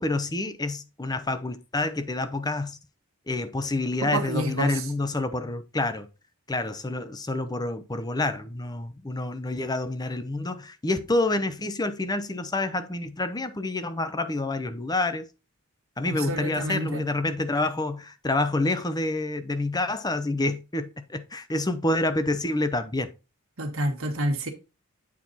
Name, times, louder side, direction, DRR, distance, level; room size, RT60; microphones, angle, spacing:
voice 1, 0.0-2.8 3.3-6.1 6.5-15.3 16.0-23.1, left 2 dB, 20° left, 0.7 m, -28 dB
voice 2, 4.1-4.8 16.0-17.0 23.6-24.5, right 1 dB, 65° right, 1.6 m, -28 dB
8.6 x 4.4 x 4.1 m
head